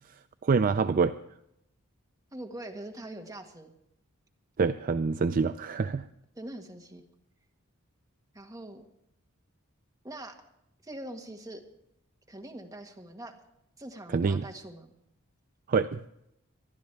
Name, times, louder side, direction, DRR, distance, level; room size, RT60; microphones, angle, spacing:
voice 1, 0.4-1.2 4.6-6.1 14.1-14.4 15.7-16.0, right 5 dB, 40° right, 10 dB, 0.4 m, -26 dB
voice 2, 2.3-3.7 6.3-7.0 8.3-8.8 10.0-10.4 10.8-11.6 12.3-13.4 13.8-15.0, right 1 dB, 15° right, 2 dB, 1.7 m, -43 dB
25.0 x 11.5 x 3.4 m, 0.80 s
head